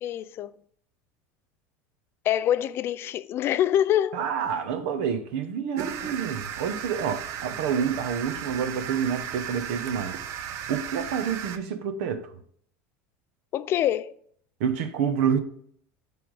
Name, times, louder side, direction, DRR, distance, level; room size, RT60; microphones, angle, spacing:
voice 1, 0.0-0.5 2.3-4.2 13.5-14.1, left 11 dB, 40° left, 0.4 m, -25 dB
voice 2, 4.1-10.2 10.7-12.3 14.6-15.4, right 7 dB, 75° right, 0.9 m, -28 dB
sound 1, 5.8-11.6, right 9 dB, 50° right, 0.6 m, -35 dB
9.9 x 3.5 x 4.8 m
supercardioid pair, 135°, 6 cm